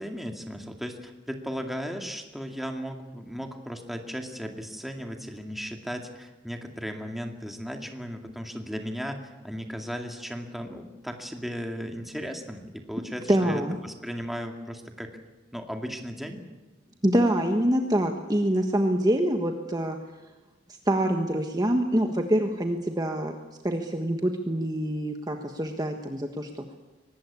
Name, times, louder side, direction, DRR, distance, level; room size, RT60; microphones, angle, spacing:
voice 1, 0.0-15.1 15.5-16.4, equal, ahead, 3 dB, 2.2 m, -36 dB
voice 2, 13.3-13.8 17.0-20.0 20.9-23.3 23.6-26.6, right 1 dB, 20° right, 4 dB, 1.4 m, -25 dB
23.5 x 19.0 x 8.6 m, 1.2 s
head